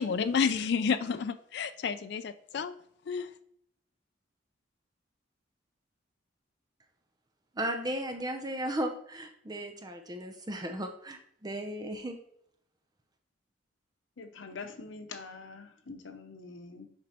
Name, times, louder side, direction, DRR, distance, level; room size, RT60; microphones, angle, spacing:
voice 1, 0.0-2.8 3.1-3.3, left 6 dB, 60° left, 0.3 m, -30 dB
voice 2, 7.5-12.2, right 1 dB, 20° right, 0.5 m, -35 dB
voice 3, 14.2-16.9, left 4 dB, 85° left, 0.9 m, -44 dB
7.0 x 5.2 x 2.9 m
head